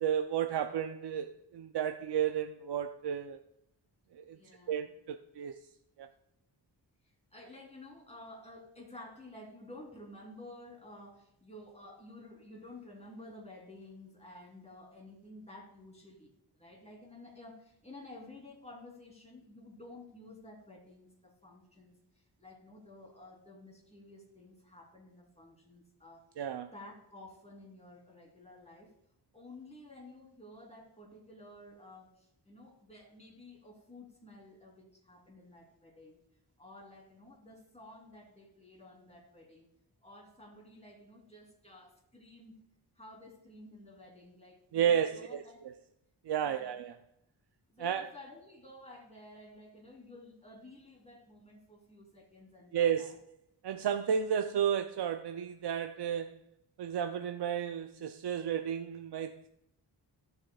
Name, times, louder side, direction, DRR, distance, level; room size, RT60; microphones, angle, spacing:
voice 1, 0.0-3.4 4.1-4.4 4.7-5.6 6.0-6.1 26.4-26.7 44.7-45.4 46.2-47.0 47.8-48.1 52.7-53.1 53.6-56.4 56.8-59.5, right 8 dB, 65° right, 0.6 m, -32 dB
voice 2, 4.3-4.9 7.0-26.2 26.7-28.9 29.3-36.2 36.6-39.7 40.0-42.5 43.0-45.7 46.4-46.8 47.7-53.2, left 1 dB, 15° left, 3.1 m, -52 dB
16.5 x 7.1 x 2.3 m
cardioid pair, 65°, 43 cm